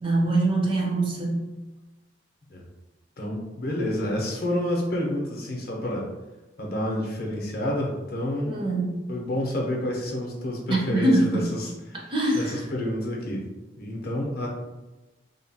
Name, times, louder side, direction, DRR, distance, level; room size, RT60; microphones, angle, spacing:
voice 1, 0.0-1.5 8.5-9.0 10.7-11.5 12.1-12.6, right 2 dB, 25° right, -2 dB, 0.4 m, -23 dB
voice 2, 3.2-6.1 6.6-8.6 9.1-13.4 13.8-14.5, left 1 dB, 50° left, -1 dB, 0.6 m, -29 dB
2.8 x 2.2 x 2.7 m, 1.1 s
head